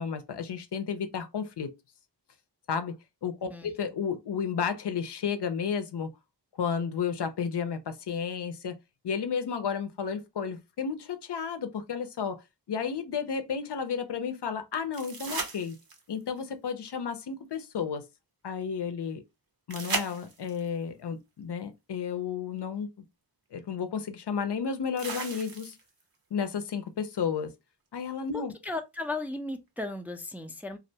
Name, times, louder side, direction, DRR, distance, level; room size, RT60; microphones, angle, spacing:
voice 1, 0.0-1.7 2.7-3.0 3.2-6.1 6.6-8.8 9.0-12.4 12.7-15.8 16.1-18.1 18.4-19.2 19.7-22.9 23.5-25.8 26.3-27.5 27.9-28.5, left 6 dB, 70° left, 0.5 m, -32 dB
sound 1, 14.9-16.2 19.7-20.7 22.6-22.7 25.0-26.0 28.9-29.0, right 4 dB, 55° right, 0.7 m, -36 dB
voice 2, 28.3-30.8, left 2 dB, 5° right, 0.4 m, -36 dB
2.4 x 2.1 x 2.7 m
wide cardioid pair, 50°, 42 cm